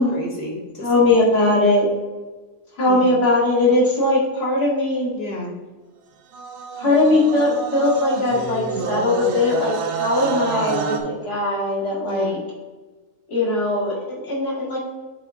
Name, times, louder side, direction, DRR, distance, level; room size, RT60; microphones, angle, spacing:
voice 1, 0.1-1.5 2.9-3.1 5.1-5.5 12.0-12.3, left 1 dB, 55° left, -1 dB, 1.5 m, -32 dB
voice 2, 0.8-1.9 2.8-5.1 6.8-12.4 13.3-14.8, left 2 dB, 85° left, -6 dB, 2.5 m, -20 dB
sound 1, 6.3-11.0, right 5 dB, 85° right, 1.2 m, -28 dB
7.9 x 3.3 x 3.6 m, 1.3 s
omnidirectional pair, 1.7 m